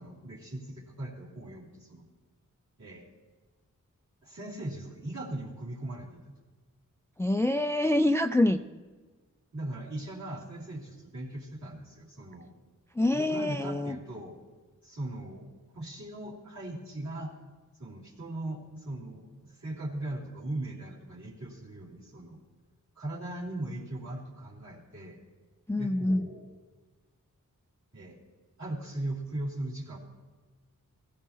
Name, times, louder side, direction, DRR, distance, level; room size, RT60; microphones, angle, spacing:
voice 1, 0.0-2.1 2.8-3.1 4.2-6.2 9.5-12.5 13.1-14.3 14.8-15.5 15.7-17.3 17.8-22.4 22.9-25.2 25.8-26.5 27.9-28.2 28.6-30.0, right 1 dB, 55° right, -5 dB, 3.1 m, -39 dB
voice 2, 7.2-8.6 13.0-14.0 25.7-26.3, left 1 dB, 10° left, 9 dB, 0.3 m, -26 dB
16.5 x 16.0 x 2.9 m, 1.3 s
wide cardioid pair, 90°, 33 cm